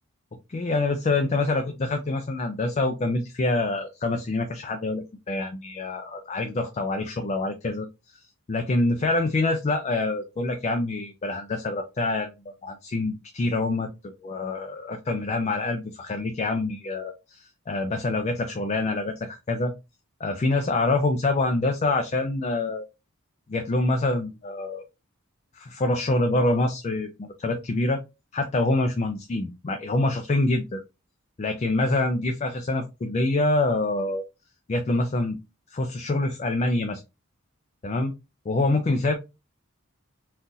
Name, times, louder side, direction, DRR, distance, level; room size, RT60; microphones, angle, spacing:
voice 1, 0.5-12.3 12.6-19.7 20.2-22.9 23.5-24.8 25.5-28.0 28.3-30.8 31.4-34.2 34.7-35.4 35.7-37.0 37.8-38.1 38.5-39.1, left 2 dB, 30° left, 5 dB, 0.4 m, -26 dB
3.8 x 2.4 x 2.6 m, 0.25 s
head